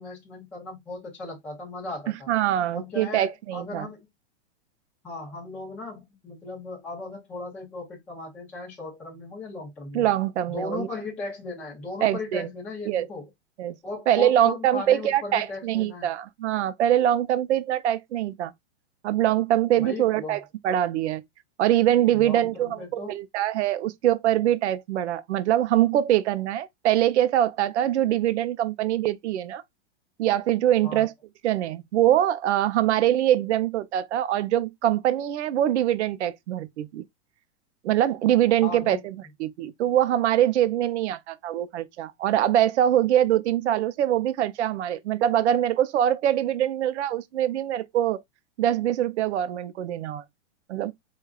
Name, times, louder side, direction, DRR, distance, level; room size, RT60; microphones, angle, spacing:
voice 1, 0.0-2.3 2.7-4.0 5.0-10.1 10.5-13.3 13.8-16.1 19.8-20.4 22.1-23.2 30.8-31.1 38.6-39.0, left 3 dB, 5° left, 0.5 m, -37 dB
voice 2, 2.3-3.9 9.9-10.9 12.0-12.5 12.9-13.1 13.6-13.7 14.1-18.5 19.0-21.2 21.6-29.6 30.2-31.1 31.4-37.0 37.8-39.1 39.4-48.2 48.6-50.2 50.7-50.9, right 12 dB, 80° right, 0.6 m, -23 dB
4.8 x 2.3 x 2.3 m
supercardioid pair, 180°, 34 cm